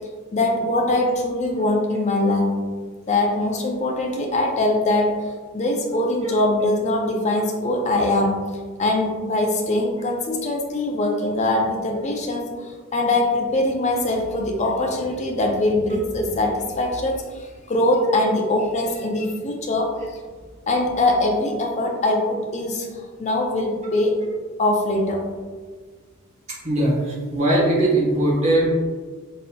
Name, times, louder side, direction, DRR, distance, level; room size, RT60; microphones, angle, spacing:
voice 1, 0.3-2.5 3.1-5.2 5.5-8.4 8.8-17.2 17.7-19.9 20.7-24.2 24.6-25.2, left 2 dB, 30° left, 1 dB, 0.4 m, -22 dB
voice 2, 26.6-28.6, right 1 dB, 30° right, -5 dB, 1.1 m, -20 dB
4.1 x 3.9 x 2.2 m, 1.5 s
head